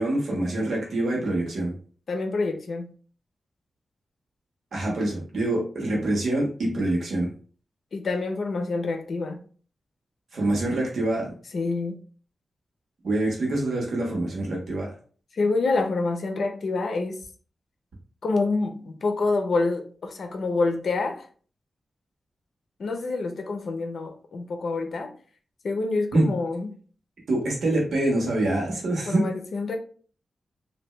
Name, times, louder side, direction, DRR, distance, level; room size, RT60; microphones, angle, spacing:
voice 1, 0.0-1.7 4.7-7.3 10.3-11.3 13.0-14.9 26.1-26.3 27.3-29.3, right 1 dB, 80° right, 1.2 m, -25 dB
voice 2, 2.1-2.9 7.9-9.4 11.5-12.0 15.4-17.2 18.2-21.2 22.8-25.1 25.6-26.7 29.1-29.8, left 3 dB, 65° left, 0.6 m, -27 dB
3.2 x 2.6 x 3.1 m
wide cardioid pair, 120°, 0 cm